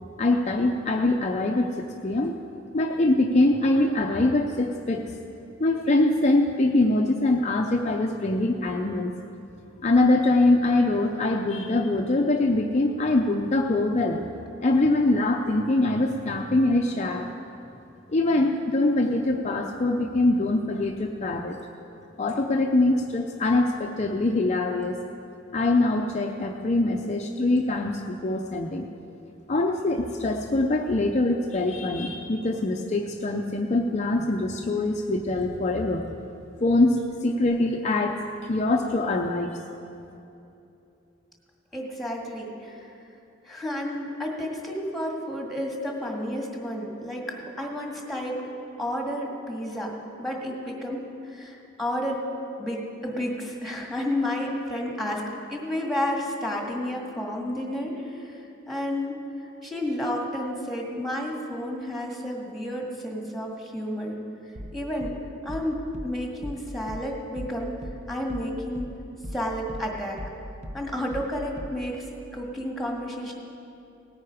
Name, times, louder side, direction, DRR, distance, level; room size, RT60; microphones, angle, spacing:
voice 1, 0.2-2.3 2.7-5.0 5.6-9.1 9.8-14.2 14.6-17.3 18.1-21.6 22.2-25.0 25.5-28.8 29.5-36.1 36.6-39.6, left 2 dB, 35° left, 2 dB, 0.6 m, -23 dB
voice 2, 41.7-42.9 43.4-48.5 48.8-52.2 52.6-64.2 64.7-65.2 65.4-67.7 68.1-68.9 69.3-70.2 70.7-73.3, left 1 dB, ahead, -1 dB, 1.9 m, -31 dB
sound 1, 64.6-72.1, equal, 35° right, 0.8 m, -40 dB
18.5 x 9.3 x 5.0 m, 2.8 s
head